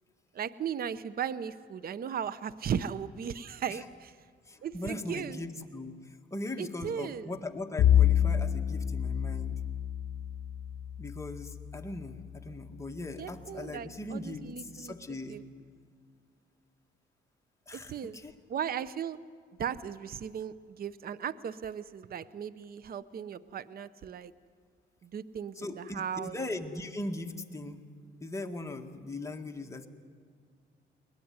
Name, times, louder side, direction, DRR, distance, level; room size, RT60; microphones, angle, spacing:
voice 1, 0.3-4.1 4.6-5.4 6.6-7.3 13.2-14.9 15.3-15.4 17.7-18.2 18.5-19.2 19.6-24.3 25.0-26.4, right 8 dB, 50° right, 16 dB, 0.7 m, -37 dB
voice 2, 4.5-9.6 11.0-15.4 17.7-18.3 25.6-27.8 28.2-29.9, left 2 dB, 15° left, 4 dB, 1.9 m, -39 dB
Bowed string instrument, 7.8-12.4, left 10 dB, 60° left, 1.2 m, -28 dB
22.5 x 19.5 x 9.6 m, 2.1 s
cardioid pair, 90°, 20 cm